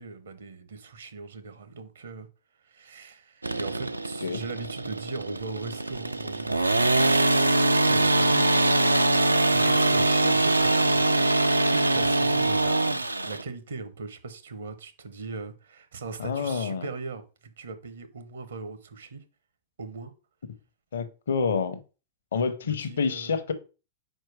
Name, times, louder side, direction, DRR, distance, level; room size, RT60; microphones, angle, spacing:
voice 1, 0.0-2.3 2.6-7.3 7.8-11.0 11.5-19.2 19.8-20.1 22.6-23.4, right 4 dB, 70° right, 1.0 m, -39 dB
sound 1, 3.4-13.4, right 2 dB, 85° right, 0.4 m, -23 dB
voice 2, 16.2-16.9 20.9-21.8 22.3-23.5, left 5 dB, 65° left, 0.7 m, -28 dB
4.5 x 4.5 x 4.8 m
figure-of-eight pair, 90°, 0 cm